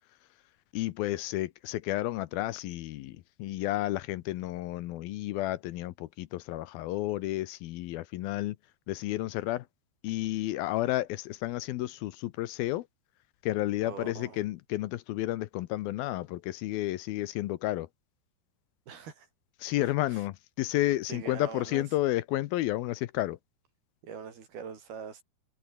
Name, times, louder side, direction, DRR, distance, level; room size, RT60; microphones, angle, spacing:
voice 1, 0.7-8.6 8.9-9.7 10.0-12.9 13.4-17.9 19.6-23.4, left 16 dB, 80° left, 2.6 m, -31 dB
voice 2, 13.8-14.4 18.9-19.3 19.8-20.3 20.9-21.8 24.0-25.2, right 7 dB, 70° right, 5.8 m, -43 dB
omnidirectional pair, 4.5 m